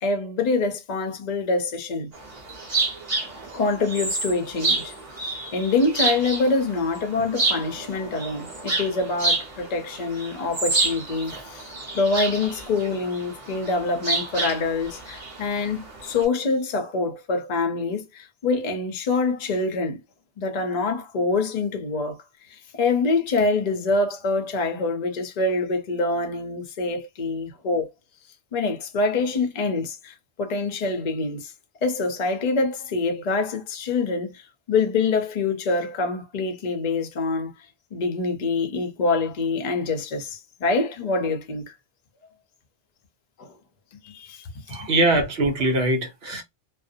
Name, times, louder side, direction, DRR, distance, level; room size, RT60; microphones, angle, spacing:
voice 1, 0.0-2.1 3.5-11.7 11.9-20.0 20.4-27.9 28.5-31.5 31.8-37.5 37.9-41.7 43.4-43.5 44.0-44.8, left 3 dB, 45° left, 0.5 m, -25 dB
sound 1, 2.1-16.2, right 3 dB, 35° right, 1.1 m, -29 dB
voice 2, 44.7-46.4, right 2 dB, 60° right, 0.9 m, -22 dB
2.6 x 2.1 x 2.5 m
omnidirectional pair, 1.3 m